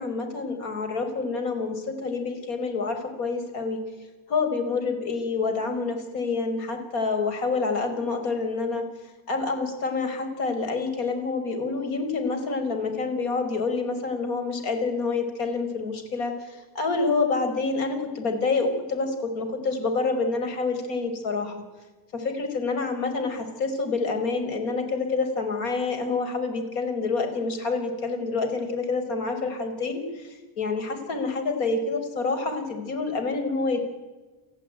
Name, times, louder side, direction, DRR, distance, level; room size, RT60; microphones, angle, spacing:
voice 1, 0.0-3.8 4.3-8.8 9.3-21.6 22.1-33.8, left 4 dB, 85° left, 7 dB, 5.5 m, -27 dB
28.5 x 14.5 x 9.3 m, 1.3 s
cardioid pair, 145°, 42 cm